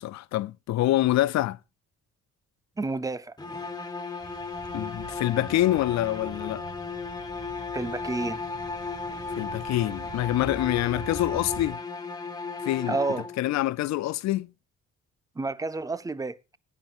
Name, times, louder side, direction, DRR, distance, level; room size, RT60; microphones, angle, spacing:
voice 1, 0.0-1.6 4.7-6.6 9.4-11.8 12.6-13.0 13.4-14.5, left 15 dB, 65° left, 0.4 m, -26 dB
voice 2, 2.8-3.3 7.7-8.4 12.9-13.3 15.4-16.4, right 3 dB, 10° right, 0.5 m, -30 dB
sound 1, 3.4-13.6, left 4 dB, 15° left, 1.2 m, -35 dB
sound 2, 4.2-11.7, right 4 dB, 40° right, 4.1 m, -44 dB
17.5 x 9.0 x 2.5 m
cardioid pair, 90°, 30 cm